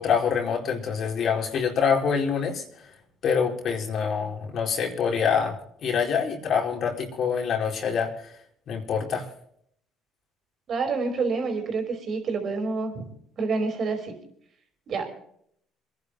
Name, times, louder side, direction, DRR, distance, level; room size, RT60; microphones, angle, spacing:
voice 1, 0.0-2.6 3.2-8.3 8.7-9.3, left 6 dB, 55° left, 1 dB, 4.4 m, -25 dB
voice 2, 10.7-13.1 13.4-14.1 14.9-15.1, right 4 dB, 50° right, 5 dB, 5.0 m, -28 dB
27.5 x 11.0 x 3.3 m, 0.67 s
hypercardioid pair, 60°, 0 cm